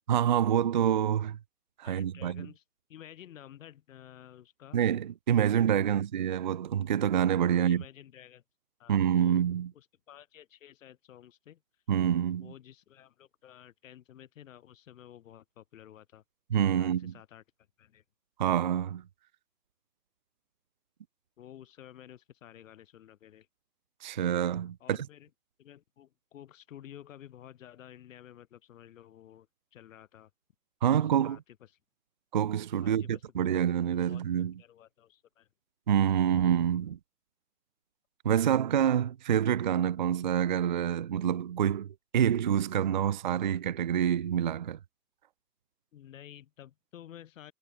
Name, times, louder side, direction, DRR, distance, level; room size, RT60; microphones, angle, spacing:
voice 1, 0.1-1.4 1.8-2.5 4.7-7.8 8.9-9.7 11.9-12.5 16.5-17.1 18.4-19.0 24.0-25.1 30.8-31.4 32.3-34.5 35.9-37.0 38.2-44.8, right 9 dB, 30° right, 0.6 m, -27 dB
voice 2, 1.8-2.6 2.9-4.8 5.9-6.0 7.6-8.4 8.8-9.5 9.7-11.6 12.4-16.2 16.8-17.4 17.8-18.0 21.4-23.5 24.8-25.3 25.6-29.5 29.7-30.3 30.9-31.7 32.8-33.2 33.5-33.6 34.1-35.5 45.9-47.5, left 11 dB, 50° left, 6.2 m, -52 dB
hypercardioid pair, 155°, 50 cm